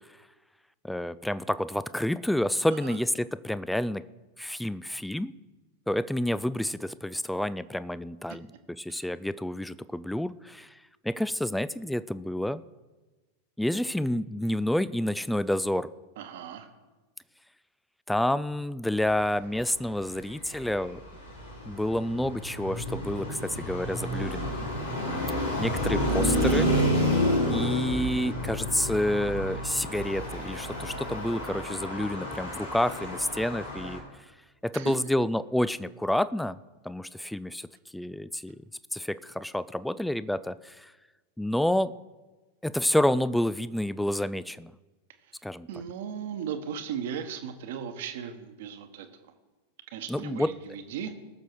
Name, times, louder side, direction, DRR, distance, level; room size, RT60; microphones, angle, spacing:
voice 1, 0.8-4.0 4.4-5.3 5.9-10.8 11.0-12.6 13.6-15.9 18.1-21.0 21.7-24.5 25.6-26.7 27.5-34.0 34.6-36.6 36.8-37.7 37.9-38.6 38.9-40.9 41.4-41.9 42.6-44.7 45.4-45.7 50.1-50.5, left 1 dB, 5° left, 16 dB, 0.3 m, -29 dB
voice 2, 16.2-16.7 25.0-25.6 34.7-34.9 45.7-49.1 49.9-51.1, right 8 dB, 55° right, 8 dB, 1.3 m, -37 dB
Traffic noise roadway noise, 20.3-34.0, equal, 85° left, 3.9 m, -30 dB
20.0 x 6.7 x 4.7 m, 1.2 s
figure-of-eight pair, 90°, 0 cm